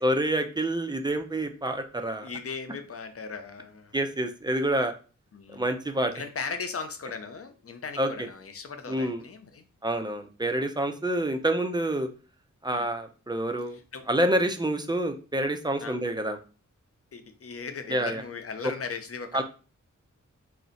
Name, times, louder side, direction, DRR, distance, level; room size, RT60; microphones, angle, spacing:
voice 1, 0.0-2.3 3.9-4.9 5.5-6.1 8.0-8.3 8.9-9.2 9.8-12.1 12.6-13.8 14.1-16.4 17.9-18.2 19.3-19.4, right 1 dB, 15° right, 6 dB, 0.4 m, -27 dB
voice 2, 2.2-4.0 5.3-5.7 6.1-9.6 12.7-12.9 13.7-14.1 15.8-16.0 17.1-19.4, left 5 dB, 50° left, 7 dB, 0.5 m, -38 dB
2.5 x 2.0 x 3.8 m, 0.35 s
cardioid pair, 50°, 31 cm